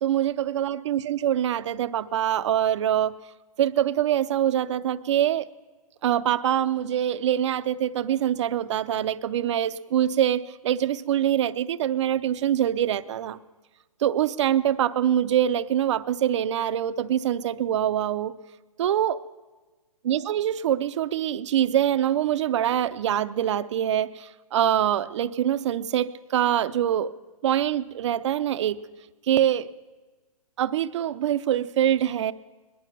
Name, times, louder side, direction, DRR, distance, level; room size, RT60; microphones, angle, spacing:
voice 1, 0.0-3.1 3.6-5.5 6.0-13.4 14.0-18.3 18.8-19.2 20.0-27.1 27.4-28.8 29.3-29.7 30.6-32.3, right 10 dB, 50° right, 13 dB, 0.6 m, -24 dB
21.0 x 11.0 x 5.9 m, 1.3 s
hypercardioid pair, 150°, 19 cm